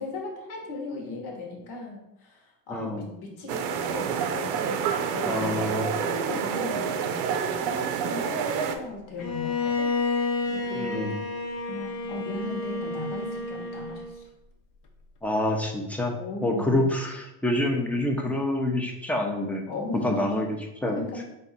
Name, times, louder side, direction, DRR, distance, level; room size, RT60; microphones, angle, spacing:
voice 1, 0.0-4.8 5.1-5.7 6.0-9.9 10.4-11.1 11.7-14.3 16.2-16.9 19.7-20.3 21.0-21.2, left 3 dB, 70° left, 0 dB, 1.3 m, -37 dB
voice 2, 2.7-3.0 5.2-5.9 10.7-11.1 15.2-16.1 16.4-19.6 20.0-20.6 20.8-21.0, left 1 dB, 5° left, 2 dB, 0.5 m, -27 dB
sound 1, 3.5-8.8, right 7 dB, 75° right, 0.6 m, -28 dB
Bowed string instrument, 9.2-14.2, left 3 dB, 50° left, 0.8 m, -30 dB
4.1 x 2.7 x 4.1 m, 0.89 s
supercardioid pair, 105°, 41 cm